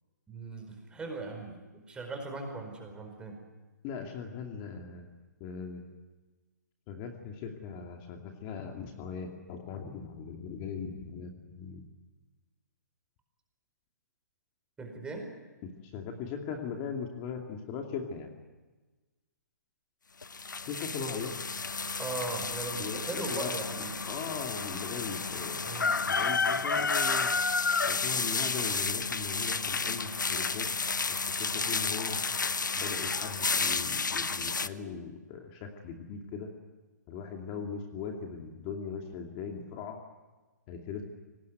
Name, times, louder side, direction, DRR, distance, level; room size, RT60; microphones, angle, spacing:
voice 1, 0.3-3.4 14.8-15.3 22.0-24.0 25.6-25.9, right 3 dB, 10° right, 3 dB, 4.6 m, -39 dB
voice 2, 3.8-5.1 5.4-5.8 6.9-11.9 15.6-18.3 20.6-21.3 22.8-25.6 26.1-27.3 27.9-30.7 31.1-32.2 32.7-36.5 37.1-40.0 40.7-41.0, left 6 dB, 30° left, 2 dB, 2.6 m, -39 dB
sound 1, 20.2-34.7, left 4 dB, 85° left, 0.9 m, -31 dB
23.5 x 19.0 x 9.5 m, 1.2 s
hypercardioid pair, 135°, 10 cm